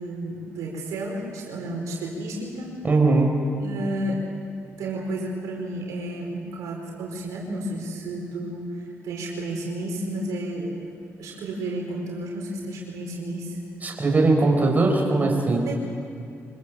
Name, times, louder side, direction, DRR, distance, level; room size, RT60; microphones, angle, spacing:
voice 1, 0.0-2.7 3.6-4.2 4.8-10.7 11.2-13.6 15.6-15.7, right 1 dB, 90° right, -2 dB, 4.8 m, -32 dB
voice 2, 2.8-3.3 13.8-15.7, right 3 dB, 30° right, -1 dB, 5.3 m, -20 dB
25.5 x 20.5 x 7.7 m, 2.4 s
cardioid pair, 85°, 5 cm